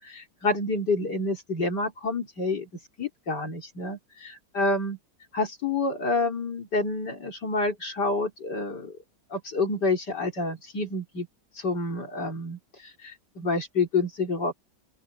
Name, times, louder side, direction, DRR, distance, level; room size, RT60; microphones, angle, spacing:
voice 1, 0.0-2.7 3.0-5.0 5.3-8.9 9.3-11.3 11.6-14.5, left 3 dB, 65° left, 4.1 m, -28 dB
open air
omnidirectional pair, 2.0 m